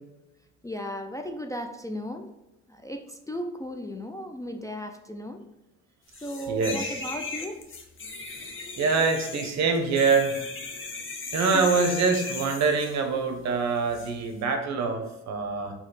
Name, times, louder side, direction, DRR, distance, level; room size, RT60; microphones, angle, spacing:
voice 1, 0.6-2.3 2.7-5.4 6.2-7.6 11.5-11.8, equal, 10° left, 3 dB, 0.3 m, -35 dB
sound 1, 6.1-13.0 13.9-14.1, left 3 dB, 45° left, 0.8 m, -37 dB
voice 2, 6.5-6.9 8.8-10.4 11.3-15.7, right 4 dB, 65° right, 5 dB, 0.8 m, -25 dB
4.2 x 2.9 x 4.0 m, 0.97 s
cardioid pair, 90°, 30 cm